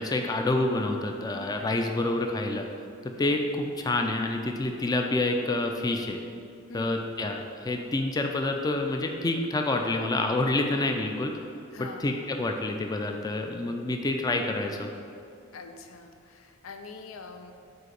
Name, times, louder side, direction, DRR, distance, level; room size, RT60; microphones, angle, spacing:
voice 1, 0.0-2.7 3.0-6.2 6.7-11.4 11.8-14.9, left 2 dB, 20° left, 3 dB, 0.4 m, -28 dB
voice 2, 11.7-12.1 15.5-17.5, left 4 dB, 90° left, 6 dB, 0.5 m, -44 dB
7.8 x 2.8 x 5.1 m, 2.4 s
head